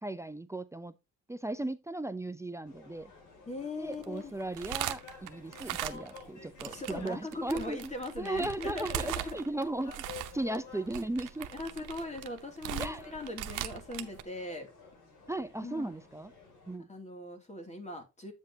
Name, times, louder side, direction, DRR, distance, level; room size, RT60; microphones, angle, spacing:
voice 1, 0.0-0.9 1.3-3.1 3.8-9.9 10.3-11.5 12.8-13.0 15.3-16.3 16.7-16.9, right 2 dB, 10° right, 0.6 m, -36 dB
sound 1, 2.6-16.8, left 5 dB, 80° left, 5.7 m, -53 dB
voice 2, 3.5-4.3 6.7-9.4 11.5-14.7 15.6-15.9 16.9-18.3, left 2 dB, 25° left, 2.7 m, -40 dB
sound 2, 3.9-6.3 6.6-14.2, right 12 dB, 90° right, 0.9 m, -39 dB
8.7 x 7.4 x 2.8 m
cardioid pair, 90°, 30 cm